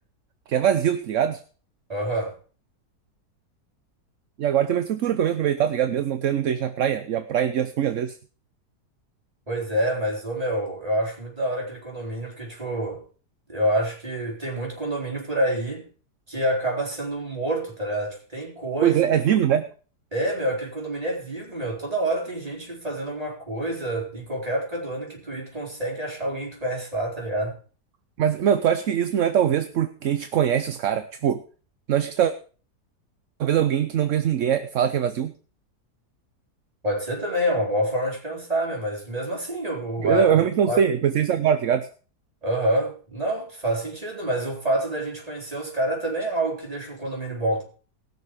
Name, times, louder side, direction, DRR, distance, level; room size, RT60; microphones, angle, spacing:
voice 1, 0.5-1.4 4.4-8.2 18.8-19.7 28.2-31.4 31.9-32.3 33.4-35.3 40.0-41.9, right 9 dB, 60° right, 0.9 m, -22 dB
voice 2, 1.9-2.4 9.5-13.0 13.5-15.9 16.3-19.2 20.1-27.6 36.8-40.4 40.7-40.8 42.4-47.6, right 1 dB, 20° right, 4.5 m, -27 dB
19.5 x 6.7 x 4.9 m
omnidirectional pair, 1.8 m